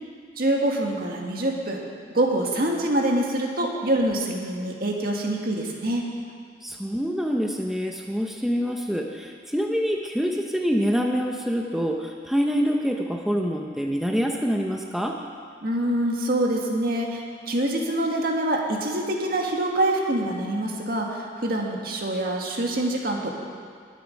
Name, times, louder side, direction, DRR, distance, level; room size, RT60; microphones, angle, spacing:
voice 1, 0.4-1.8 2.1-6.1 15.6-23.3, right 1 dB, 55° right, 0 dB, 1.8 m, -25 dB
voice 2, 6.6-15.2, equal, ahead, 1 dB, 0.6 m, -26 dB
20.5 x 8.1 x 5.2 m, 2.2 s
head